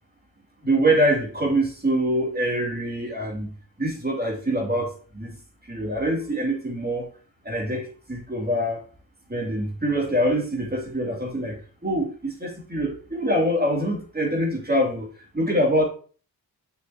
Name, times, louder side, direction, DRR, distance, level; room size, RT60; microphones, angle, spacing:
voice 1, 0.6-3.5 3.8-5.4 5.7-7.1 7.4-8.8 9.3-11.6 11.8-15.1 15.3-15.8, right 1 dB, 25° right, -1 dB, 3.0 m, -24 dB
6.9 x 6.1 x 3.0 m, 0.38 s
cardioid pair, 65°, 37 cm